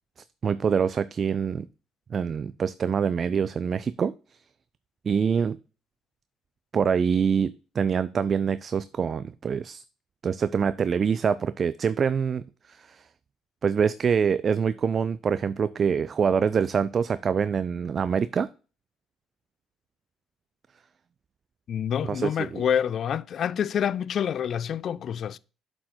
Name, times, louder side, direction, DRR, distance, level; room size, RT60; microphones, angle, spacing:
voice 1, 0.4-1.7 2.1-4.1 5.1-5.6 6.7-9.8 10.2-13.0 13.6-18.5 22.0-22.6, right 6 dB, 45° right, 0.3 m, -25 dB
voice 2, 21.7-25.4, left 8 dB, 55° left, 0.3 m, -27 dB
7.4 x 4.5 x 4.3 m
hypercardioid pair, 65°, 0 cm